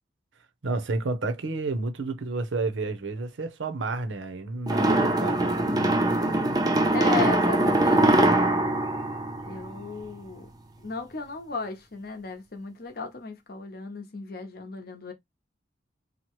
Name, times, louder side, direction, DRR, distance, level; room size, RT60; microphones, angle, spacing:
voice 1, 0.6-6.0, right 3 dB, 85° right, 0.6 m, -31 dB
sound 1, 4.7-10.0, right 1 dB, 20° right, 0.5 m, -22 dB
voice 2, 6.9-8.3 9.4-10.5 10.8-15.1, left 4 dB, 55° left, 0.7 m, -35 dB
2.9 x 2.1 x 3.0 m
head